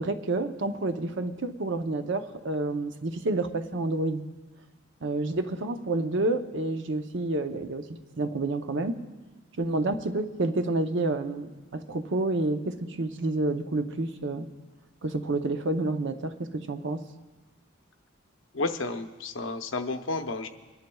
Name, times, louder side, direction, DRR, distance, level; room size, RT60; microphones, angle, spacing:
voice 1, 0.0-4.2 5.0-7.8 8.2-9.0 9.6-14.5 15.0-17.0, right 2 dB, 65° right, 8 dB, 0.7 m, -29 dB
voice 2, 18.5-20.5, left 3 dB, 70° left, 7 dB, 0.7 m, -31 dB
27.0 x 10.5 x 2.3 m, 1.3 s
head